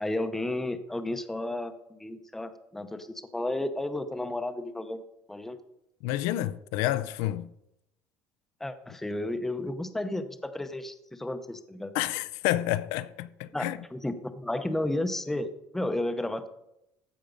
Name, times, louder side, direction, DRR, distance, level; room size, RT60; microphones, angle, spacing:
voice 1, 0.0-5.0 5.3-5.6 8.6-11.9 13.5-16.5, left 1 dB, 5° left, 0.6 m, -32 dB
voice 2, 6.0-7.5 11.9-13.8, left 14 dB, 85° left, 0.4 m, -29 dB
14.5 x 5.1 x 5.2 m
cardioid pair, 150°, 6 cm